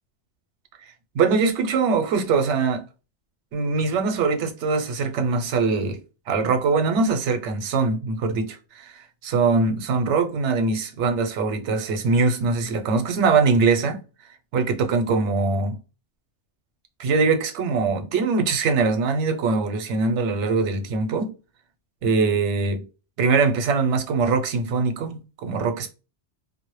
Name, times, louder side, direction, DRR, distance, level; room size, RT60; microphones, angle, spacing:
voice 1, 1.1-2.8 3.5-6.0 6.3-14.0 14.5-15.8 17.0-21.3 22.0-22.9 23.2-25.9, right 4 dB, 90° right, 0.9 m, -22 dB
2.1 x 2.0 x 2.9 m
omnidirectional pair, 1.2 m